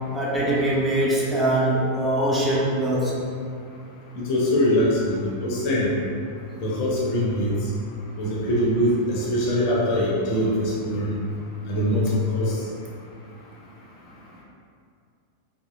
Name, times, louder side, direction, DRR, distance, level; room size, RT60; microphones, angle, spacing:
voice 1, 0.1-3.2, right 1 dB, 10° right, -7 dB, 0.6 m, -22 dB
voice 2, 4.1-5.9 6.6-7.5 8.2-10.5 10.8-11.1 11.7-12.6, equal, 45° left, -5 dB, 0.5 m, -23 dB
2.7 x 2.4 x 2.3 m, 2.3 s
figure-of-eight pair, 90°, 0 cm